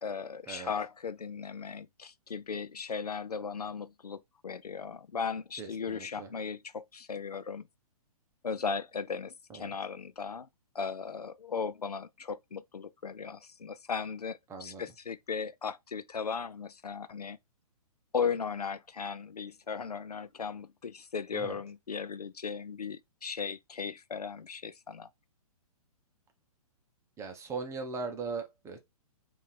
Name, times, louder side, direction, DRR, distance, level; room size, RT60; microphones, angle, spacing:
voice 1, 0.0-7.6 8.4-10.5 10.7-17.4 18.1-25.1, left 6 dB, 85° left, 0.5 m, -37 dB
voice 2, 5.6-6.3 9.5-9.7 14.5-14.8 21.3-21.6 27.2-28.8, right 4 dB, 15° right, 0.9 m, -39 dB
5.4 x 2.7 x 3.4 m
figure-of-eight pair, 120°, 19 cm